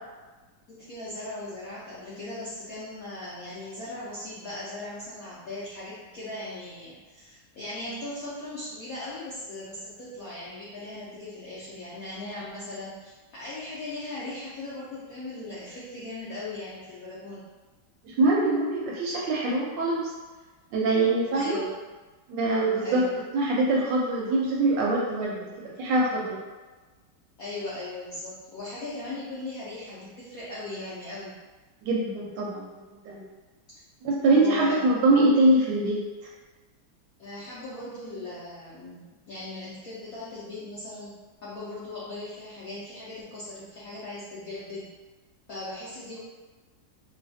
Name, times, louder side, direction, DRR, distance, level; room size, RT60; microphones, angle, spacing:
voice 1, 0.7-17.4 21.3-21.7 22.8-23.1 27.4-31.4 34.3-35.0 37.2-41.2 41.4-44.9 45.5-46.2, left 2 dB, 75° left, -9 dB, 0.8 m, -38 dB
voice 2, 18.0-20.1 20.7-21.6 22.3-23.0 23.3-26.4 31.8-32.8 33.0-33.2 34.0-36.0, right 2 dB, 75° right, -4 dB, 1.1 m, -23 dB
3.2 x 2.3 x 2.6 m, 1.3 s
omnidirectional pair, 2.2 m